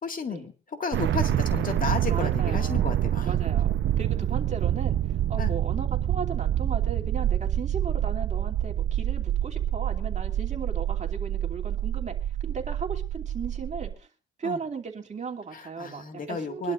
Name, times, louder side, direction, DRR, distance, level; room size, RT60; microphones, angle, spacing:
voice 1, 0.0-3.4 5.4-5.6 14.4-14.6 15.5-16.7, left 4 dB, 45° left, 6 dB, 2.1 m, -33 dB
sound 1, 0.9-13.9, right 11 dB, 70° right, 0.9 m, -27 dB
voice 2, 2.0-2.9 3.2-12.2 12.4-14.1 14.4-16.7, right 5 dB, 35° right, 3 dB, 2.8 m, -36 dB
24.5 x 11.5 x 2.6 m, 0.33 s
cardioid pair, 90°, 20 cm